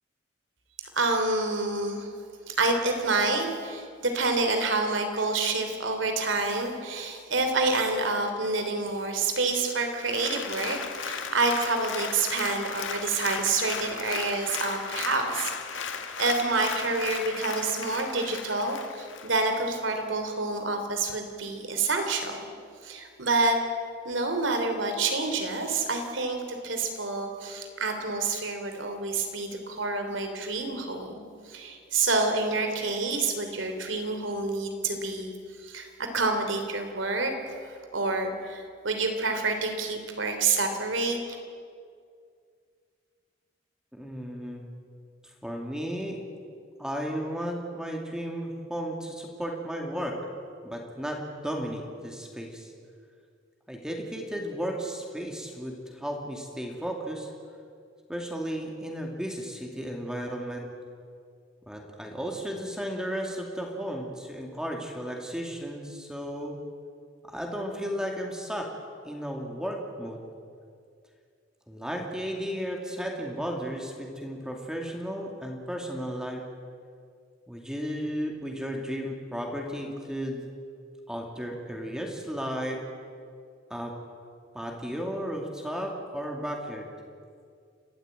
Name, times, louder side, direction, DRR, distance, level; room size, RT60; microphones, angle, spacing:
voice 1, 0.9-2.1 2.5-15.5 15.9-22.4 22.8-23.6 24.0-35.3 35.6-41.4, right 3 dB, 75° right, 5 dB, 3.2 m, -28 dB
Applause, 9.9-19.7 20.1-20.2, left 6 dB, 75° left, 1.8 m, -36 dB
voice 2, 43.9-44.7 45.4-46.2 46.8-50.2 50.6-52.7 53.7-57.3 58.1-60.7 61.7-66.6 67.2-68.7 69.0-70.2 71.7-76.4 77.5-80.4 81.1-82.8 83.7-83.9 84.5-86.9, equal, 5° right, 1 dB, 2.4 m, -34 dB
29.5 x 13.5 x 8.9 m, 2.2 s
head